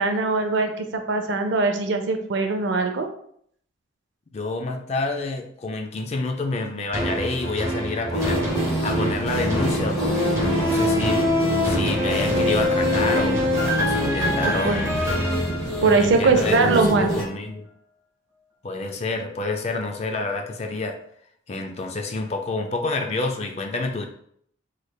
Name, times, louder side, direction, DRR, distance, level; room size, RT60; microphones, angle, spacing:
voice 1, 0.0-3.1 14.4-14.8 15.8-17.1, right 3 dB, 65° right, 6 dB, 0.4 m, -21 dB
voice 2, 4.3-8.4 8.8-11.3 11.6-13.4 13.8-15.0 15.8-17.7 18.6-21.0 21.5-24.0, left 3 dB, 35° left, 4 dB, 0.4 m, -28 dB
sound 1, 6.9-16.3 16.8-16.9, left 1 dB, 15° right, 0.7 m, -25 dB
sound 2, 8.1-17.2, equal, 5° left, 1.1 m, -27 dB
3.3 x 3.2 x 2.2 m, 0.65 s
head